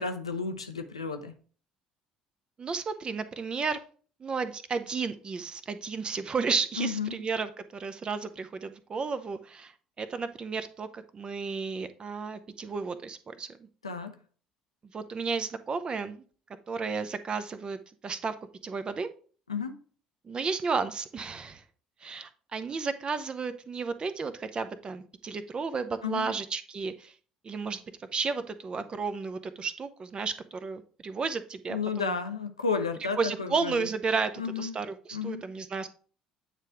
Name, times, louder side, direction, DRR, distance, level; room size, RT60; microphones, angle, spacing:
voice 1, 0.0-1.3 6.8-7.2 13.8-14.1 19.5-19.8 26.0-26.3 31.7-33.9 34.4-34.7 35.1-35.4, left 5 dB, 85° left, 0.6 m, -32 dB
voice 2, 2.6-3.8 4.2-13.5 14.9-16.2 16.7-18.4 18.6-19.1 20.2-21.6 22.0-27.1 27.4-32.2 33.2-35.9, right 5 dB, 30° right, 0.7 m, -33 dB
9.1 x 3.3 x 4.8 m
figure-of-eight pair, 55°, 3 cm